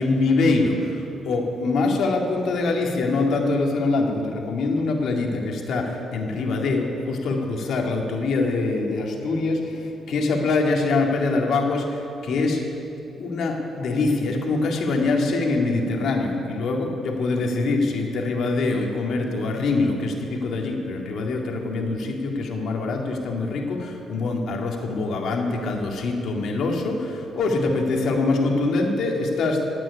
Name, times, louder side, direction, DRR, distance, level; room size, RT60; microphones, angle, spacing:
voice 1, 0.0-12.6 13.1-29.6, left 3 dB, 70° left, 1 dB, 2.1 m, -24 dB
16.5 x 6.2 x 9.7 m, 2.7 s
cardioid pair, 90°, 0 cm